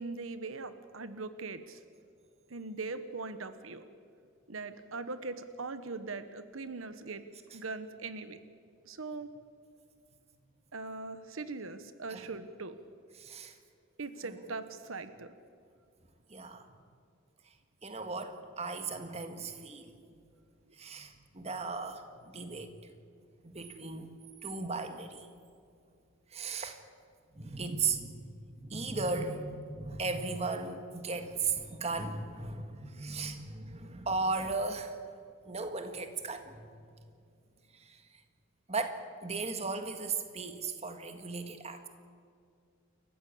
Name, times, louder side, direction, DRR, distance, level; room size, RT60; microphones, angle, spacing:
voice 1, 0.0-1.8 2.5-3.8 4.5-7.2 7.5-8.4 8.8-9.3 10.7-12.7 14.0-15.3, right 3 dB, 85° right, 11 dB, 1.1 m, -40 dB
voice 2, 13.2-13.6 14.2-14.4 16.3-16.6 17.8-20.2 20.8-22.7 23.4-24.1 24.4-25.3 26.3-26.8 27.3-34.9 35.5-36.7 37.7-38.0 38.7-41.9, right 4 dB, 30° right, 7 dB, 1.7 m, -36 dB
28.5 x 14.5 x 8.5 m, 2.3 s
head